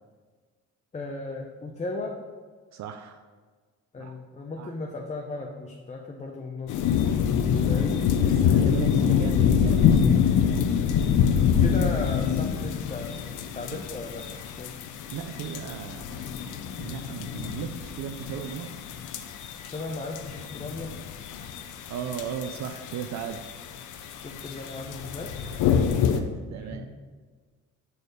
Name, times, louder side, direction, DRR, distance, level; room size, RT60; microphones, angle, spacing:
voice 1, 0.9-2.2 3.9-6.8 7.7-8.0 10.8-11.0 11.6-14.8 19.6-21.0 24.2-25.3 26.6-26.9, left 2 dB, 25° left, 1 dB, 0.7 m, -36 dB
voice 2, 2.7-3.2 4.0-4.1 4.6-4.7 7.5-7.8 8.2-10.1 15.1-16.1 16.8-18.7 21.9-23.4 25.7-26.9, right 8 dB, 65° right, 7 dB, 0.5 m, -36 dB
sound 1, 6.7-26.2, left 8 dB, 80° left, 0.6 m, -26 dB
6.7 x 4.3 x 5.1 m, 1.5 s
cardioid pair, 90°, 30 cm